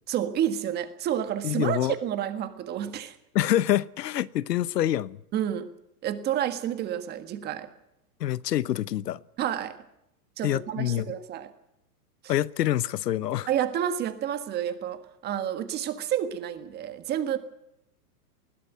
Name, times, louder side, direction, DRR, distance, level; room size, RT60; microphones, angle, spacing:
voice 1, 0.1-3.2 5.3-5.7 6.0-7.7 9.4-9.8 10.4-11.5 13.5-17.4, right 10 dB, 20° right, 1.6 m, -29 dB
voice 2, 1.4-1.9 3.3-5.2 8.2-9.2 10.4-11.1 12.3-13.5, left 12 dB, 85° left, 0.9 m, -26 dB
20.5 x 16.0 x 9.3 m
hypercardioid pair, 155°, 47 cm